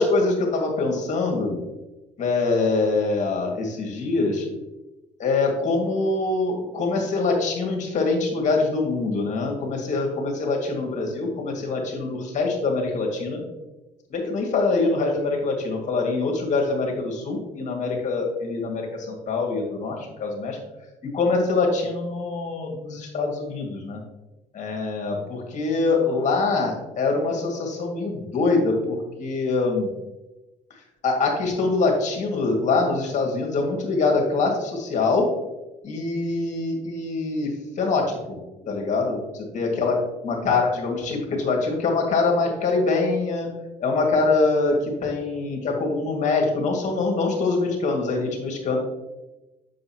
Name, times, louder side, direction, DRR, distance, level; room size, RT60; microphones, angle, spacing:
voice 1, 0.0-1.6 2.2-4.4 5.2-13.4 14.1-20.6 21.1-24.0 24.5-29.9 31.0-35.3 35.8-38.4 38.7-40.0 40.2-43.5 43.8-48.8, left 3 dB, 45° left, 1 dB, 2.1 m, -24 dB
7.5 x 6.4 x 3.0 m, 1.0 s
cardioid pair, 110°, 17 cm